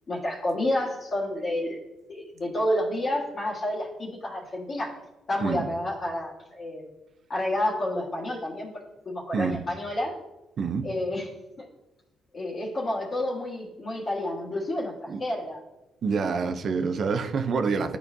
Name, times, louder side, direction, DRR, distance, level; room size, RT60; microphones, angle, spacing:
voice 1, 0.1-1.8 2.1-4.9 5.3-6.9 7.3-8.7 9.1-10.1 10.8-11.3 11.6-11.7 12.3-15.6, left 1 dB, 40° left, -5 dB, 1.6 m, -29 dB
voice 2, 10.6-10.9 15.1-15.2 16.0-18.0, right 5 dB, 55° right, 8 dB, 0.6 m, -27 dB
11.0 x 4.3 x 2.7 m, 1.0 s
cardioid pair, 90°, 0 cm